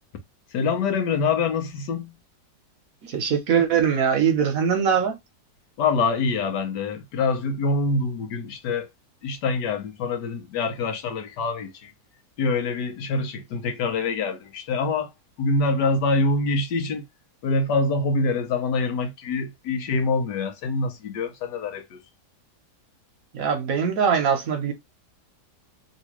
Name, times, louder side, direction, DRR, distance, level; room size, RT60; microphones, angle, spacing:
voice 1, 0.5-2.1 5.8-8.9 9.2-11.9 12.4-15.1 15.4-17.0 17.4-22.0, left 3 dB, 75° left, 1.4 m, -25 dB
voice 2, 3.0-5.2 23.3-24.7, right 7 dB, 60° right, 1.0 m, -22 dB
3.2 x 2.8 x 2.9 m
omnidirectional pair, 1.8 m